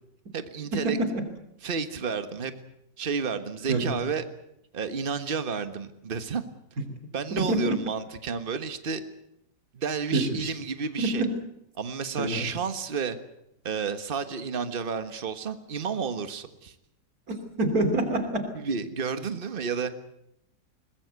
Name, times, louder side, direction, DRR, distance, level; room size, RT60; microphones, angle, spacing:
voice 1, 0.3-1.0 1.6-2.5 3.0-4.2 4.7-6.4 7.1-9.0 9.7-11.2 11.8-13.2 13.6-16.7 18.5-19.9, right 5 dB, 35° right, 10 dB, 1.5 m, -31 dB
voice 2, 0.8-1.2 3.7-4.0 7.4-7.8 10.1-10.5 11.0-11.3 12.2-12.5 17.3-18.5, right 2 dB, 55° right, 7 dB, 3.5 m, -26 dB
22.0 x 20.0 x 8.1 m, 0.80 s
omnidirectional pair, 1.8 m